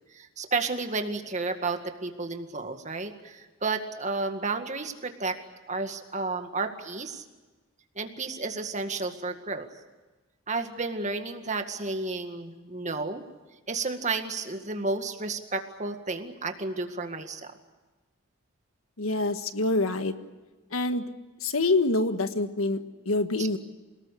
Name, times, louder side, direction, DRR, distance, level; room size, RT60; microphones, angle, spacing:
voice 1, 0.1-5.4 5.7-7.2 8.0-9.7 10.5-13.2 13.7-17.5 23.4-23.5, right 3 dB, 35° right, 6 dB, 2.0 m, -32 dB
voice 2, 19.0-20.1 20.7-21.1 21.4-23.6, left 2 dB, 80° left, 9 dB, 1.6 m, -26 dB
28.0 x 19.0 x 8.4 m, 1.2 s
head